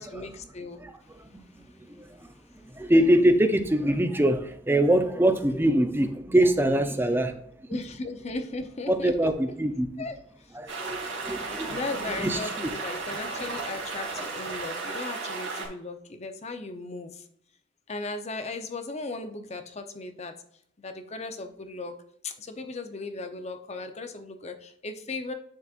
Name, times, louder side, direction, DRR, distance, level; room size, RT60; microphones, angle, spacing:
voice 1, 0.0-2.9 7.7-9.4 10.0-10.8 11.5-17.3 17.9-20.4 20.8-22.0 22.2-25.3, left 3 dB, 35° left, 7 dB, 0.7 m, -37 dB
voice 2, 2.8-7.3 7.7-7.8 8.9-9.9 10.6-11.8 12.1-12.4, right 1 dB, 10° right, 7 dB, 0.6 m, -23 dB
sound 1, 10.7-15.7, right 3 dB, 80° right, 2.5 m, -34 dB
10.5 x 4.2 x 2.5 m, 0.70 s
head